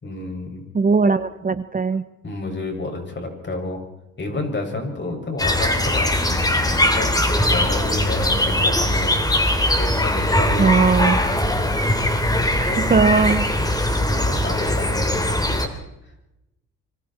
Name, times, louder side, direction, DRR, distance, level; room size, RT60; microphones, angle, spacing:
voice 1, 0.0-0.6 2.2-3.8 4.2-9.2 9.8-11.3 14.0-15.7, left 2 dB, 35° left, 3 dB, 6.8 m, -30 dB
voice 2, 0.7-2.0 10.6-11.2 12.6-13.6, right 5 dB, 30° right, 12 dB, 1.1 m, -19 dB
sound 1, 5.4-15.7, left 1 dB, 10° left, 3.3 m, -20 dB
25.5 x 25.5 x 4.5 m, 0.91 s
cardioid pair, 90°, 30 cm